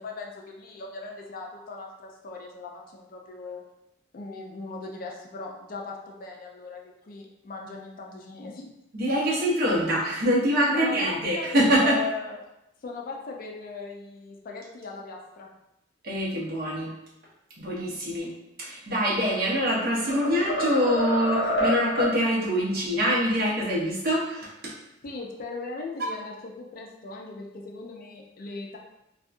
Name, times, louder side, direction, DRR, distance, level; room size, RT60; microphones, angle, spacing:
voice 1, 0.0-3.6 4.1-8.8 10.7-12.4 12.8-15.5 25.0-28.8, left 3 dB, 50° left, 0 dB, 0.4 m, -38 dB
voice 2, 8.9-12.0 16.0-16.9 17.6-24.7, equal, 55° right, -5 dB, 0.8 m, -25 dB
sound 1, 19.3-19.7 20.1-22.2, equal, 65° left, 0.8 m, -27 dB
2.6 x 2.4 x 2.4 m, 0.87 s
head